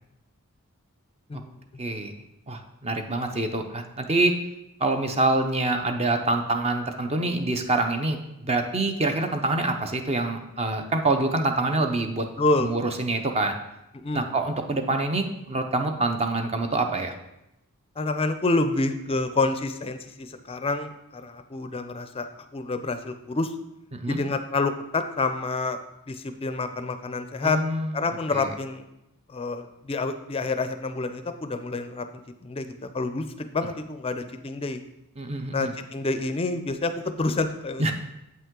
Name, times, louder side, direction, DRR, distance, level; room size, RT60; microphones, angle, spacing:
voice 1, 1.8-2.1 2.5-4.3 4.8-12.3 12.6-13.6 14.1-17.1 23.9-24.2 27.4-28.0 28.3-28.5 35.2-35.7 37.8-37.9, right 2 dB, 30° right, 6 dB, 0.6 m, -26 dB
voice 2, 12.4-12.7 13.9-14.3 18.0-23.5 24.1-25.8 26.1-27.6 27.9-28.9 29.3-32.7 32.9-34.8 35.5-37.9, left 3 dB, 25° left, 9 dB, 0.4 m, -28 dB
8.0 x 5.4 x 3.7 m, 0.87 s
head